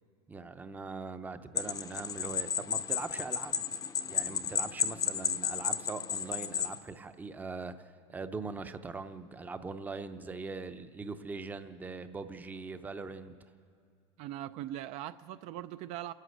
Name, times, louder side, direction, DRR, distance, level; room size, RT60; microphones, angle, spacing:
voice 1, 0.3-3.7 4.1-13.3, right 4 dB, 10° right, 10 dB, 0.6 m, -41 dB
sound 1, 1.6-6.8, left 8 dB, 25° left, 0.7 m, -33 dB
voice 2, 14.2-16.1, right 13 dB, 50° right, 12 dB, 0.5 m, -40 dB
29.5 x 11.5 x 7.9 m, 2.4 s
supercardioid pair, 145°, 14 cm